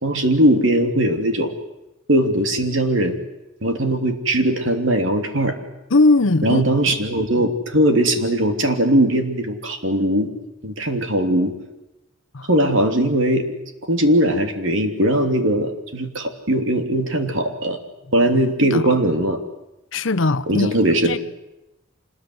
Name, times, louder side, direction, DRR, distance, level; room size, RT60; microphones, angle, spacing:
voice 1, 0.0-1.5 2.1-3.2 3.6-5.6 6.4-10.3 10.6-11.5 12.5-13.4 13.9-17.8 18.1-19.4 20.5-21.2, right 1 dB, 70° right, 3.2 m, -19 dB
voice 2, 5.9-6.6 12.3-12.5 18.6-18.9 19.9-20.7 21.0-21.2, left 2 dB, 70° left, 0.9 m, -19 dB
26.5 x 20.5 x 9.6 m
head